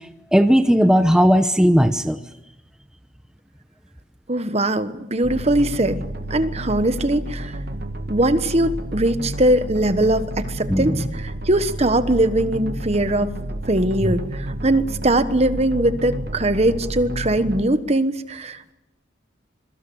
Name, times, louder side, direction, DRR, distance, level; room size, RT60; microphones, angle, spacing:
voice 1, 0.3-2.2 10.7-10.9, equal, 5° right, 7 dB, 0.9 m, -16 dB
voice 2, 4.3-6.0 6.3-7.6 8.1-13.3 13.7-18.7, right 1 dB, 35° right, 11 dB, 1.3 m, -21 dB
sound 1, 5.2-17.6, right 1 dB, 55° right, 1.8 m, -30 dB
26.5 x 23.0 x 7.1 m, 0.89 s
head